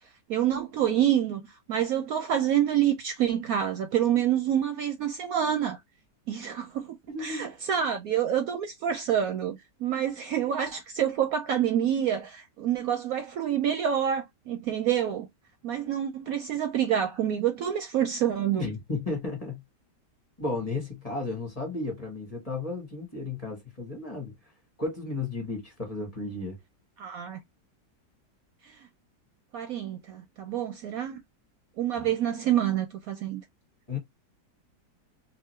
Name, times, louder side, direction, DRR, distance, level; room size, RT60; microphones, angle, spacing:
voice 1, 0.3-5.8 6.3-6.9 7.2-15.3 15.6-18.7 27.0-27.4 29.5-31.2 31.8-33.4, right 10 dB, 70° right, 0.9 m, -27 dB
voice 2, 7.1-7.5 18.6-19.6 20.4-24.3 24.8-26.6 32.0-32.1 33.9-34.0, left 3 dB, 25° left, 1.1 m, -33 dB
2.9 x 2.5 x 3.1 m
omnidirectional pair, 1.8 m